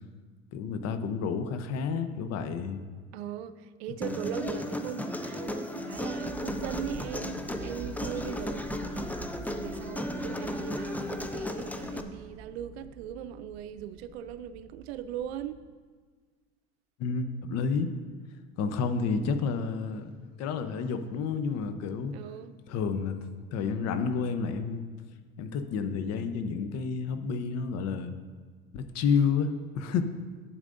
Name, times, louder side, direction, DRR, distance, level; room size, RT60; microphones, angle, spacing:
voice 1, 0.5-2.8 17.0-17.9 18.6-22.1 22.7-23.2 23.5-24.9 25.4-28.1 28.7-30.0, left 5 dB, 55° left, 9 dB, 0.8 m, -30 dB
voice 2, 3.1-9.2 9.5-15.6 22.1-22.5, right 10 dB, 85° right, 12 dB, 0.5 m, -39 dB
Human voice, 4.0-12.0, left 1 dB, 5° left, 0.5 m, -35 dB
sound 1, 5.9-15.7, right 3 dB, 15° right, 1.0 m, -46 dB
11.0 x 8.0 x 2.6 m, 1.5 s
supercardioid pair, 85°, 31 cm